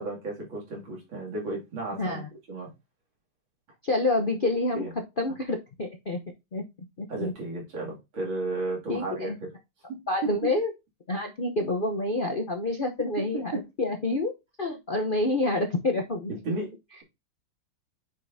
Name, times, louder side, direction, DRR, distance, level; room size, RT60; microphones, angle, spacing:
voice 1, 0.0-2.2 2.5-2.7 4.7-4.9 7.1-9.5 9.9-10.5 13.0-13.1 13.5-13.6 16.3-16.7, right 2 dB, 80° right, -2 dB, 3.3 m, -33 dB
voice 2, 2.0-2.3 3.8-4.9 5.2-6.2 6.5-6.6 7.0-7.3 8.9-9.4 10.1-10.7 11.1-14.3 14.6-16.3, left 2 dB, 50° left, 3 dB, 0.6 m, -28 dB
8.1 x 5.2 x 2.6 m, 0.23 s
omnidirectional pair, 2.1 m